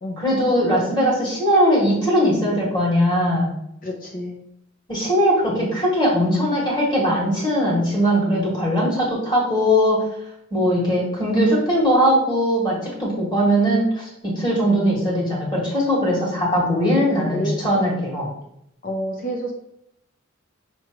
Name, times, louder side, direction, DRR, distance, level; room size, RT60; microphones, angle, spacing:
voice 1, 0.2-3.5 4.9-10.1 10.5-18.3, equal, 20° left, -4 dB, 1.7 m, -20 dB
voice 2, 3.8-4.4 17.2-17.6 18.8-19.5, equal, 40° left, 1 dB, 0.6 m, -28 dB
5.8 x 3.1 x 2.9 m, 0.78 s
head